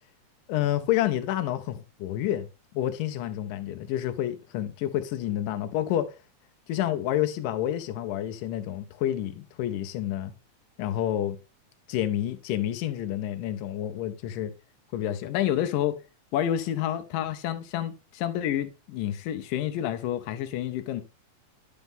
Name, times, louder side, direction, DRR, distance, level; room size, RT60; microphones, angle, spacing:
voice 1, 0.5-2.5 2.7-6.1 6.7-10.3 10.8-11.4 11.9-14.5 14.9-16.0 16.3-21.0, left 12 dB, 85° left, 2.3 m, -29 dB
10.5 x 4.0 x 3.6 m
omnidirectional pair, 3.8 m